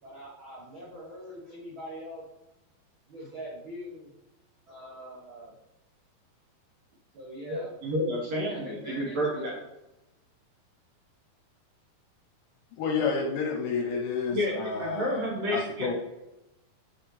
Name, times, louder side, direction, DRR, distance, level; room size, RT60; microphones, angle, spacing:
voice 1, 0.0-2.2 3.1-4.1 4.7-5.5 7.1-7.7 8.3-9.4, equal, 85° right, -5 dB, 1.1 m, -42 dB
voice 2, 7.5-9.5 14.3-14.5 14.8-15.9, equal, 60° right, -3 dB, 1.9 m, -30 dB
voice 3, 12.8-15.9, left 5 dB, 75° left, 1 dB, 2.1 m, -30 dB
8.3 x 4.9 x 3.1 m, 0.95 s
omnidirectional pair, 4.3 m